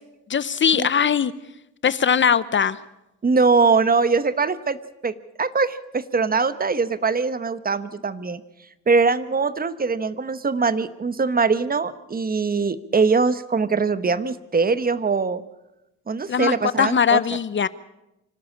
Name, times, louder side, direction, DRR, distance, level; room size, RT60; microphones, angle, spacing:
voice 1, 0.3-1.3 1.8-2.8 16.3-17.7, left 7 dB, 40° left, 17 dB, 0.7 m, -20 dB
voice 2, 3.2-4.8 5.0-8.4 8.9-15.4 16.1-17.2, right 4 dB, 30° right, 14 dB, 1.1 m, -22 dB
26.0 x 12.5 x 8.5 m, 0.92 s
cardioid pair, 90°, 30 cm